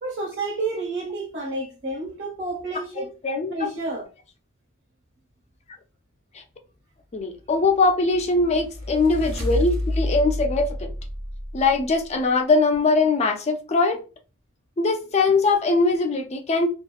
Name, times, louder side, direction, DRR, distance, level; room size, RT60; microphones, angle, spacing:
voice 1, 0.0-3.1 3.5-4.1, right 2 dB, 60° right, 1.3 m, -30 dB
voice 2, 3.0-3.7 7.1-10.9 11.5-14.0 14.8-16.7, left 3 dB, 30° left, 0.4 m, -21 dB
sound 1, 7.9-12.1, left 1 dB, 45° right, 1.1 m, -29 dB
2.8 x 2.4 x 2.3 m
head